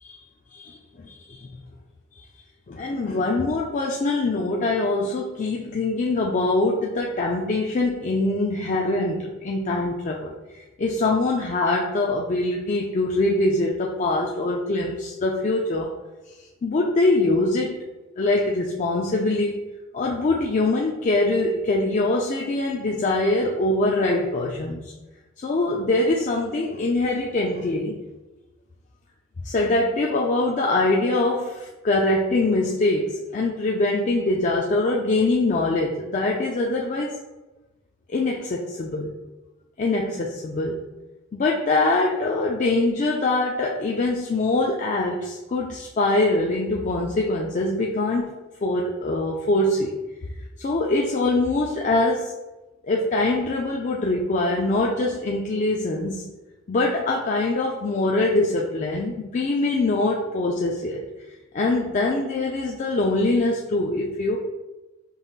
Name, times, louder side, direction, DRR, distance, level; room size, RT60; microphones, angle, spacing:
voice 1, 0.5-1.5 2.7-15.9 16.6-17.8 18.2-19.5 19.9-24.9 25.4-28.0 29.4-37.2 38.1-39.1 39.8-40.8 41.3-49.9 50.6-52.3 52.8-56.3 56.7-61.0 61.5-64.4, left 2 dB, 40° left, -2 dB, 0.4 m, -23 dB
5.4 x 3.9 x 2.4 m, 1.1 s
head